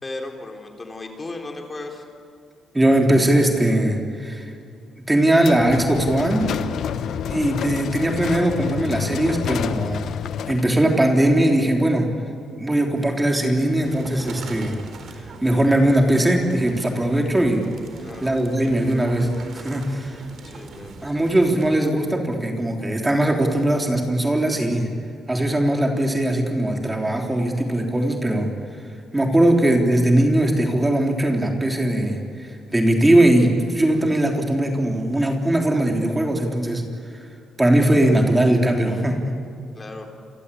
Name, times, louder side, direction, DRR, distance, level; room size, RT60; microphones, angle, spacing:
voice 1, 0.0-2.0 18.0-18.3 20.4-21.2 39.7-40.1, left 2 dB, 25° left, 3 dB, 4.0 m, -35 dB
voice 2, 2.7-4.5 5.1-6.5 7.3-10.1 10.5-12.1 12.6-14.8 15.4-17.6 18.2-20.2 21.0-24.9 25.3-28.5 29.1-36.8 37.6-39.2, right 1 dB, 15° right, 2 dB, 3.6 m, -20 dB
sound 1, 5.4-10.8, left 9 dB, 70° left, 0.9 m, -28 dB
sound 2, 13.8-21.8, right 4 dB, 60° right, 4.4 m, -41 dB
28.0 x 24.5 x 8.6 m, 2.4 s
cardioid pair, 90°, 0 cm